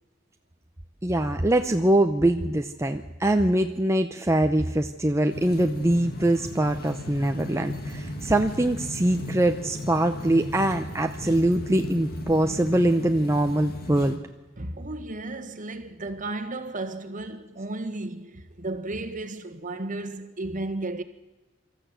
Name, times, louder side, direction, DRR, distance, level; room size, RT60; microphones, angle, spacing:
voice 1, 1.0-14.2, right 1 dB, 15° right, 0.7 m, -23 dB
sound 1, 5.3-14.2, left 1 dB, 50° left, 2.2 m, -36 dB
voice 2, 14.6-21.0, right 2 dB, 40° right, 1.5 m, -34 dB
24.5 x 13.5 x 8.1 m
head